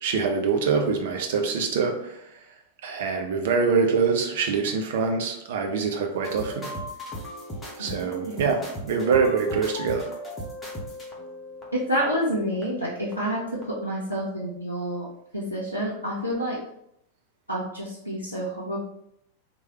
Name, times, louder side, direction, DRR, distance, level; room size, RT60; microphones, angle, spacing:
voice 1, 0.0-2.2 2.8-6.7 7.8-10.1, right 5 dB, 55° right, 3 dB, 0.5 m, -24 dB
sound 1, 6.2-13.9 14.1-14.5, equal, 15° left, 0.9 m, -38 dB
voice 2, 7.8-8.5 11.7-15.1 15.3-16.6 17.5-18.8, equal, 85° left, -8 dB, 0.6 m, -29 dB
3.1 x 2.2 x 2.9 m, 0.75 s
figure-of-eight pair, 90°, 0 cm